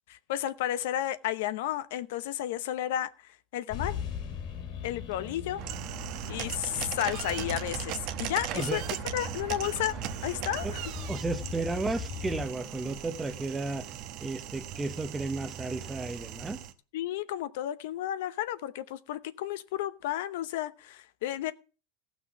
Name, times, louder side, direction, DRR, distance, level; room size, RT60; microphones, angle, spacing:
voice 1, 0.1-4.0 4.8-5.6 6.3-8.8 9.1-9.9 10.2-10.7 16.9-21.5, left 12 dB, 75° left, 0.8 m, -32 dB
sound 1, 3.7-12.5, left 8 dB, 50° left, 2.4 m, -40 dB
sound 2, 5.6-16.7, right 11 dB, 45° right, 1.0 m, -38 dB
voice 2, 11.1-13.9 14.2-16.6, right 3 dB, 10° right, 0.8 m, -33 dB
16.0 x 6.2 x 6.0 m
supercardioid pair, 165°, 0 cm